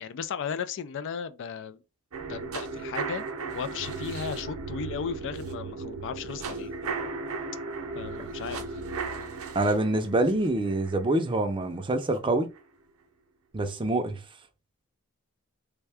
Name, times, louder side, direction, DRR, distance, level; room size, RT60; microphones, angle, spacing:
voice 1, 0.0-1.8 2.3-6.7 7.9-8.6, left 7 dB, 60° left, 0.4 m, -35 dB
sound 1, 2.1-12.2 12.6-12.7, right 4 dB, 75° right, 0.6 m, -36 dB
voice 2, 9.5-12.5 13.5-14.2, right 2 dB, 25° right, 0.5 m, -26 dB
3.5 x 2.2 x 3.4 m
head